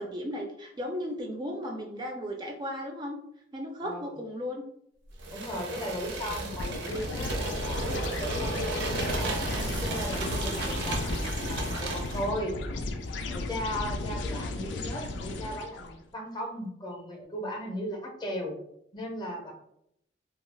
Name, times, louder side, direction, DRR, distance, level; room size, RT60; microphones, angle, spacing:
voice 1, 0.0-3.2 3.5-4.6, equal, 25° right, 2 dB, 0.3 m, -35 dB
voice 2, 3.8-4.2 5.3-12.6 13.3-18.6 18.9-19.5, equal, 25° left, 1 dB, 0.5 m, -37 dB
sound 1, 5.2-12.3, right 2 dB, 85° right, 0.6 m, -34 dB
sound 2, 6.5-15.9, left 2 dB, 90° left, 0.4 m, -34 dB
2.3 x 2.2 x 3.2 m, 0.75 s
head